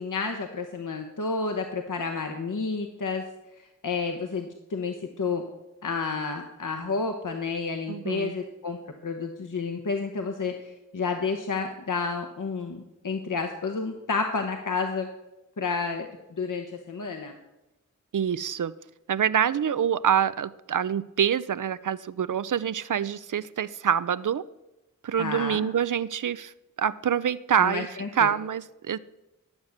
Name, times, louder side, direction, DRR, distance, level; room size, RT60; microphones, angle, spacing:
voice 1, 0.0-3.2 3.6-5.4 5.8-8.8 9.0-15.1 15.6-17.3 25.2-25.6 27.6-28.3, left 4 dB, 70° left, 4 dB, 1.0 m, -30 dB
voice 2, 7.9-8.3 18.1-18.7 19.1-24.4 25.0-26.5 26.8-27.9 28.2-29.0, right 8 dB, 70° right, 16 dB, 0.5 m, -26 dB
11.5 x 7.0 x 6.5 m, 0.97 s
cardioid pair, 45°, 32 cm